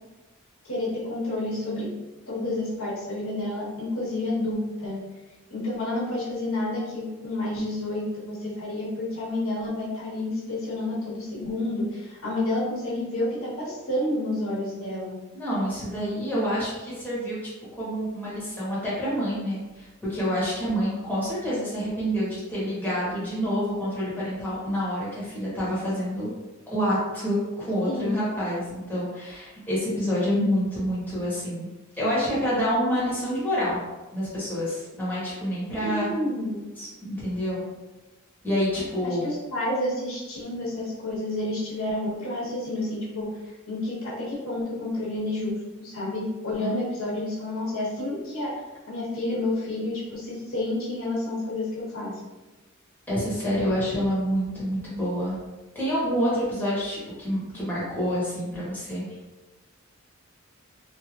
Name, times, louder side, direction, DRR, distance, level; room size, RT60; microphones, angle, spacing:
voice 1, 0.6-1.9 2.3-5.0 5.5-15.2 27.9-28.2 35.8-36.6 39.0-43.4 43.7-48.5 48.9-52.1, left 1 dB, 75° left, -7 dB, 1.1 m, -30 dB
voice 2, 15.3-17.4 17.7-26.3 26.7-31.7 32.0-33.8 34.1-36.1 36.8-37.6 38.4-39.2 46.6-46.7 53.1-55.4 55.7-59.0, equal, 10° left, -9 dB, 1.1 m, -27 dB
3.2 x 2.6 x 2.4 m, 1.1 s
head